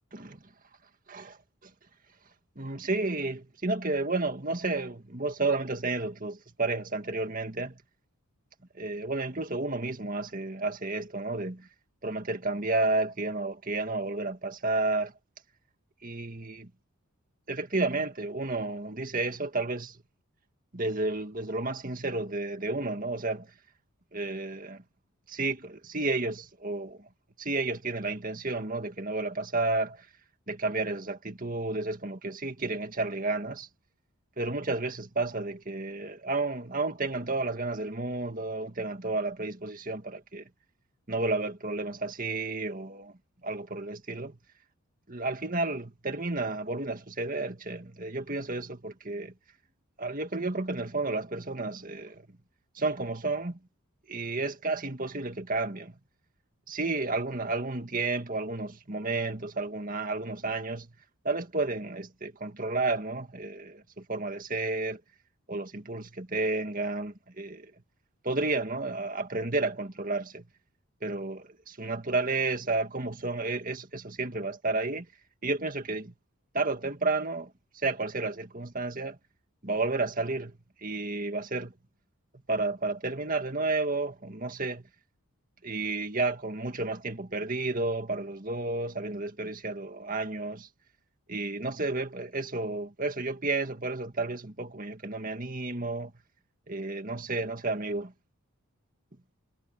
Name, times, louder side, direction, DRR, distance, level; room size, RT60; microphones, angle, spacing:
voice 1, 2.6-7.8 8.7-11.7 12.0-15.1 16.0-16.7 17.5-20.0 20.7-23.5 24.1-24.8 25.3-27.1 27.4-30.1 30.5-33.7 34.4-40.4 41.1-43.1 43.4-44.4 45.1-49.3 50.0-52.3 52.7-53.6 54.1-55.9 56.7-60.9 61.2-65.0 65.5-67.7 68.2-70.4 71.0-75.1 75.4-76.1 76.5-77.5 77.8-79.2 79.6-80.5 80.8-81.7 82.5-84.8 85.6-90.7 91.3-96.1 96.7-98.1, right 3 dB, 35° right, 2.0 m, -31 dB
head